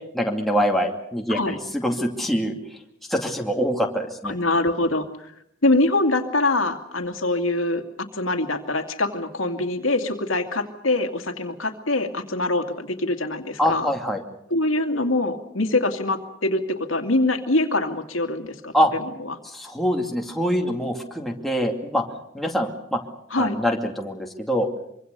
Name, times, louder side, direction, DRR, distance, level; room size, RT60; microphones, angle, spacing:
voice 1, 0.1-2.5 3.1-4.3 13.6-14.2 18.7-18.9 19.5-22.0 22.3-23.0 23.4-24.7, equal, ahead, 1 dB, 2.5 m, -24 dB
voice 2, 4.2-5.3 5.6-13.9 14.5-19.4 23.3-23.6, left 2 dB, 90° left, 6 dB, 2.4 m, -24 dB
24.5 x 24.5 x 6.8 m, 0.75 s
head